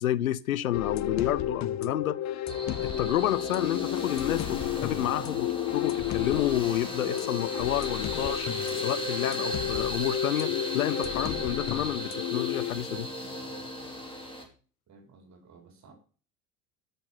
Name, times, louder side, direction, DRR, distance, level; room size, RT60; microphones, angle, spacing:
voice 1, 0.0-8.5 8.8-13.1, left 12 dB, 85° left, 0.7 m, -30 dB
sound 1, 0.7-12.7, left 12 dB, 40° left, 0.9 m, -32 dB
sound 2, 2.5-14.4, equal, 10° left, 4.7 m, -36 dB
voice 2, 14.9-15.9, right 4 dB, 40° right, 4.0 m, -55 dB
13.5 x 6.9 x 5.7 m
hypercardioid pair, 70°, 41 cm